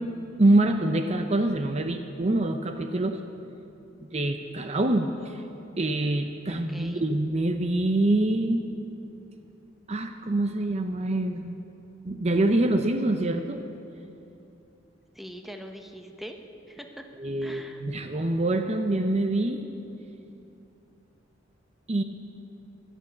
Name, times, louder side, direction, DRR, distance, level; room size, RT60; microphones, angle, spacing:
voice 1, 0.4-3.2 4.1-5.4 5.8-8.6 9.9-11.6 12.1-13.6 17.2-19.7 21.9-22.0, right 2 dB, 35° right, 6 dB, 0.7 m, -25 dB
voice 2, 6.5-7.1 15.1-17.1 17.4-17.8, equal, ahead, 4 dB, 1.0 m, -43 dB
15.5 x 11.0 x 8.4 m, 2.8 s
head